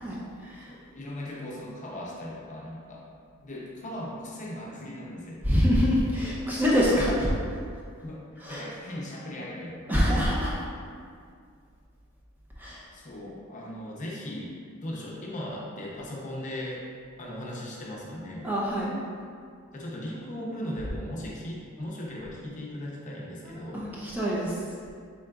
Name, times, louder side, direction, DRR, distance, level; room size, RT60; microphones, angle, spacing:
voice 1, 0.0-0.7 5.5-7.3 8.4-8.6 9.9-10.5 12.6-12.9 18.4-19.0 23.7-24.6, equal, 10° right, -6 dB, 0.4 m, -25 dB
voice 2, 0.7-3.1 3.4-5.8 8.0-10.1 12.9-16.8 17.2-18.5 19.7-23.8, left 1 dB, 35° left, -4 dB, 0.6 m, -38 dB
3.7 x 3.6 x 2.3 m, 2.2 s
head